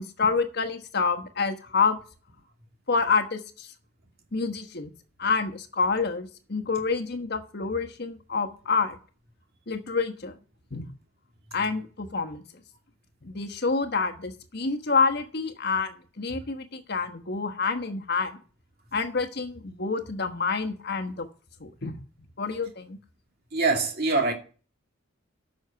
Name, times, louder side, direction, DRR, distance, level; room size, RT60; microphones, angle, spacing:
voice 1, 0.0-2.0 2.9-3.7 4.3-4.9 5.2-9.0 9.7-10.4 10.7-10.9 11.5-12.4 13.2-18.3 18.9-21.3 21.6-22.0 22.4-23.0, left 4 dB, 55° left, 1.2 m, -28 dB
voice 2, 23.5-24.3, right 3 dB, 50° right, 2.4 m, -24 dB
10.0 x 6.4 x 6.8 m
head